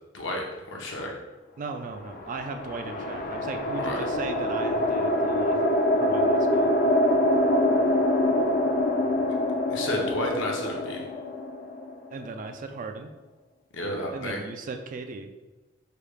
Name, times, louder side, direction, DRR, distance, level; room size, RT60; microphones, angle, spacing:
voice 1, 0.1-1.1 3.7-4.0 9.7-11.1 13.7-14.4, left 1 dB, 65° left, 0 dB, 0.7 m, -31 dB
voice 2, 1.6-6.7 12.1-13.1 14.1-15.3, right 4 dB, 40° right, 6 dB, 0.3 m, -37 dB
sound 1, 2.0-12.4, left 1 dB, 45° left, 0.4 m, -25 dB
4.8 x 2.3 x 3.3 m, 1.1 s
head